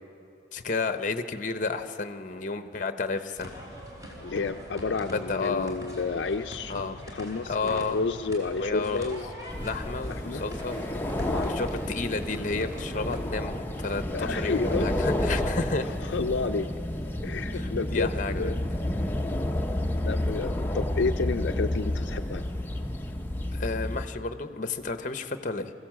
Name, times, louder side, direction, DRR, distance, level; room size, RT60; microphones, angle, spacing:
voice 1, 0.5-3.5 5.1-5.8 6.7-7.0 7.5-8.0 8.6-9.1 9.5-10.8 11.5-15.9 17.5-18.5 23.5-25.7, left 3 dB, 40° left, 9 dB, 0.8 m, -31 dB
sound 1, 3.4-13.2, equal, 20° right, 3.8 m, -43 dB
voice 2, 4.2-9.3 10.2-10.5 11.2-11.6 14.1-14.9 16.1-16.7 17.2-18.6 20.0-22.4, left 4 dB, 70° left, 6 dB, 0.5 m, -30 dB
sound 2, 9.5-24.1, left 1 dB, 10° left, 0.7 m, -30 dB
24.0 x 15.5 x 7.4 m, 2.9 s
head